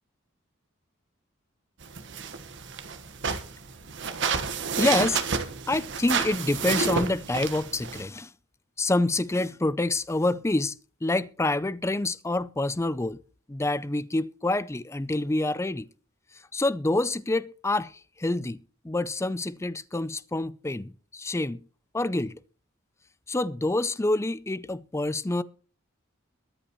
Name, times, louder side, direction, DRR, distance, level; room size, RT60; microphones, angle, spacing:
sound 1, 1.8-8.0, right 5 dB, 60° right, 1.4 m, -30 dB
voice 1, 4.8-5.2 5.7-8.3 8.8-13.2 13.5-15.9 16.5-18.6 18.8-21.6 21.9-22.4 23.3-25.4, left 2 dB, 15° left, 0.4 m, -27 dB
22.5 x 8.1 x 3.1 m
head